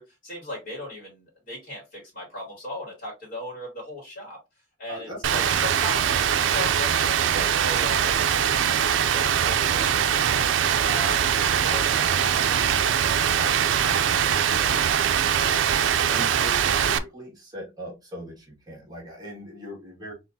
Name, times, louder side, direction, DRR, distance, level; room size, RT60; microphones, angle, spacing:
voice 1, 0.0-4.4 4.8-6.1 6.4-10.5 10.8-14.8, left 1 dB, 50° left, -3 dB, 2.8 m, -38 dB
voice 2, 4.9-5.4 13.8-14.0 15.3-20.1, equal, 20° right, -3 dB, 1.9 m, -40 dB
Rain, 5.2-17.0, right 8 dB, 80° right, 0.4 m, -22 dB
4.1 x 3.8 x 2.6 m, 0.24 s
head